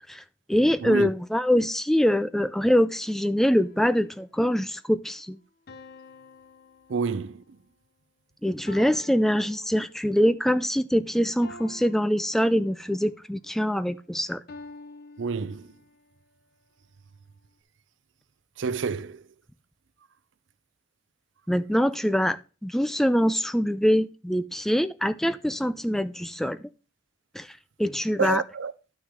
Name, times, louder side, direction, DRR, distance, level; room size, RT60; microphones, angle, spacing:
voice 1, 0.5-5.4 8.4-14.4 21.5-26.7 27.3-27.5 27.8-28.4, equal, ahead, 0.4 m, -24 dB
sound 1, 3.5-4.3 5.7-7.5 8.7-10.3 11.4-13.1 14.5-16.1, left 2 dB, 55° left, 0.9 m, -48 dB
voice 2, 6.9-7.4 15.2-15.7 18.6-19.2 28.2-28.7, right 5 dB, 75° right, 0.5 m, -28 dB
11.5 x 6.2 x 3.6 m
head